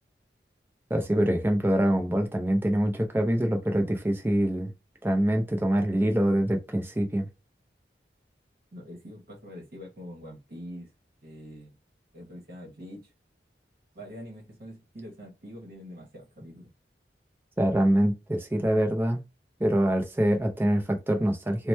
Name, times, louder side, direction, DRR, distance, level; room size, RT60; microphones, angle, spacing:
voice 1, 0.9-4.7 5.0-7.3 17.6-19.2 19.6-21.7, right 1 dB, 10° right, 0.5 m, -25 dB
voice 2, 8.7-10.9 11.2-11.8 12.1-13.1 13.9-16.7, equal, 55° right, 1.1 m, -44 dB
2.9 x 2.1 x 3.1 m
head